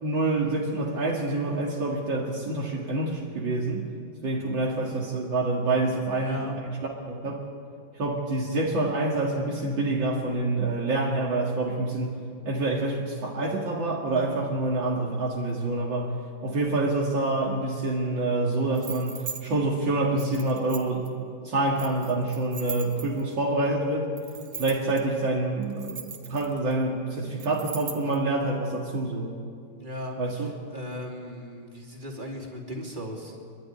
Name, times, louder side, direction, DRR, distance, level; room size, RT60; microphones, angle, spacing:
voice 1, 0.0-3.9 4.2-6.4 7.1-7.5 8.0-12.2 12.4-16.1 16.4-24.1 24.6-29.3 30.2-30.5, right 2 dB, 80° right, -3 dB, 2.9 m, -27 dB
voice 2, 6.2-6.6 29.8-33.4, equal, 25° right, -1 dB, 3.0 m, -37 dB
sound 1, 18.7-19.4 20.2-21.1 21.8-23.3 24.2-25.0 25.6-26.7 27.4-28.2, right 5 dB, 50° right, 1.9 m, -39 dB
28.5 x 12.0 x 9.7 m, 2.3 s
omnidirectional pair, 2.1 m